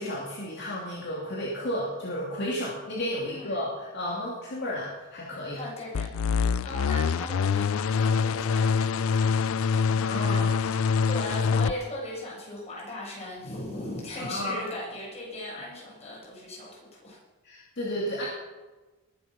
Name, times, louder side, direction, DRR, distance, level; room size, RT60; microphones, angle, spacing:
voice 1, 0.0-5.6 10.0-10.5 14.2-14.6 17.4-18.3, equal, 50° left, -4 dB, 2.7 m, -32 dB
voice 2, 3.3-3.6 5.5-6.1 6.6-17.2, left 1 dB, 30° left, -5 dB, 6.7 m, -38 dB
sound 1, 5.9-11.7, left 6 dB, 70° left, 0.4 m, -25 dB
21.0 x 8.2 x 6.2 m, 1.2 s
head